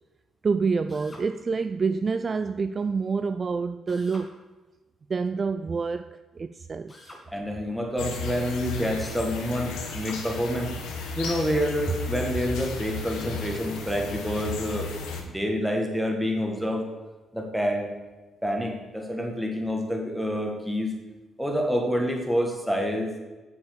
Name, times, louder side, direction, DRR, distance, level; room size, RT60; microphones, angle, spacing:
voice 1, 0.4-4.4 5.1-6.9, right 4 dB, 35° right, 11 dB, 0.3 m, -27 dB
Drill, 0.9-1.3 3.9-4.3 6.9-7.3 9.8-10.2, left 1 dB, 20° left, 2.3 m, -47 dB
voice 2, 7.3-10.7 11.2-14.9 15.2-16.9 17.3-17.9 18.4-20.9 21.4-23.1, equal, ahead, 2 dB, 1.8 m, -27 dB
sound 1, 8.0-15.2, left 4 dB, 90° left, 1.4 m, -34 dB
7.1 x 6.3 x 6.7 m, 1.2 s
cardioid pair, 90°, 0 cm